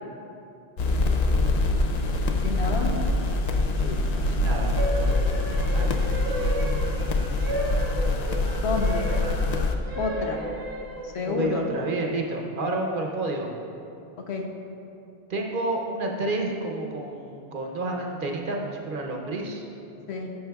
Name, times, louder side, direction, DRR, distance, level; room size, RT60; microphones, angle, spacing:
sound 1, 0.8-9.7, left 2 dB, 55° left, 0.5 m, -24 dB
voice 1, 2.4-2.9 8.6-9.1 9.9-10.4 11.0-11.7 14.3-14.4 20.1-20.3, left 4 dB, 90° left, 2 dB, 1.1 m, -28 dB
voice 2, 3.8-5.2 5.7-5.9 11.2-13.5 15.3-19.6, right 2 dB, 55° right, 1 dB, 0.9 m, -30 dB
sound 2, 4.8-11.3, right 2 dB, 25° right, 0.5 m, -33 dB
11.5 x 6.9 x 2.3 m, 2.7 s
omnidirectional pair, 1.1 m